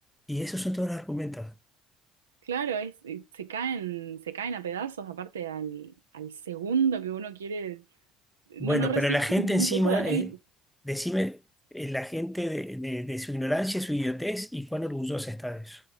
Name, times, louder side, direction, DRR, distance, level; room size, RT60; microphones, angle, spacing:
voice 1, 0.3-1.5 8.6-10.3 10.8-11.4 11.7-15.8, equal, 5° left, 0.5 m, -29 dB
voice 2, 2.4-7.8 8.5-10.4, right 7 dB, 85° right, 0.5 m, -32 dB
6.6 x 3.2 x 5.4 m
hypercardioid pair, 60°, 0 cm